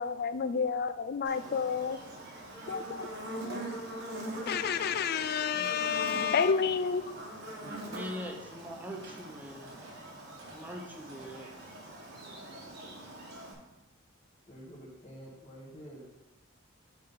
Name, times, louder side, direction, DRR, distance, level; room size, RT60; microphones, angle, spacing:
voice 1, 0.0-2.0 2.7-3.1 3.4-3.6 4.5-7.0, left 6 dB, 45° left, 13 dB, 0.3 m, -30 dB
Buzz, 1.2-13.5, right 1 dB, 50° right, 1.3 m, -43 dB
voice 2, 7.8-9.7 10.5-11.5, equal, 10° right, 1 dB, 0.7 m, -42 dB
sound 1, 9.7-11.5 12.2-12.3 12.8-13.0, right 1 dB, 70° right, 2.0 m, -54 dB
voice 3, 14.5-16.1, equal, 25° left, -7 dB, 1.2 m, -48 dB
5.8 x 5.2 x 5.3 m, 1.0 s
head